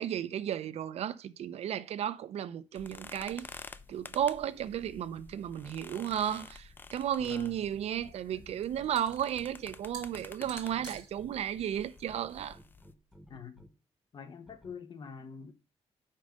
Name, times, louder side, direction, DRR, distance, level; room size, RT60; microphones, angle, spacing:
voice 1, 0.0-3.5 3.9-12.6, right 10 dB, 70° right, 0.5 m, -34 dB
sound 1, 2.8-12.9, left 4 dB, 20° left, 0.3 m, -51 dB
sound 2, 5.2-6.5 7.3-11.3 12.1-13.7 14.5-14.7, equal, ahead, 1.0 m, -55 dB
sound 3, 7.0-13.2, right 4 dB, 35° right, 1.9 m, -53 dB
voice 2, 7.2-7.6 13.3-13.6 14.1-15.5, left 6 dB, 40° left, 0.9 m, -45 dB
5.3 x 5.2 x 6.5 m
wide cardioid pair, 165°, 11 cm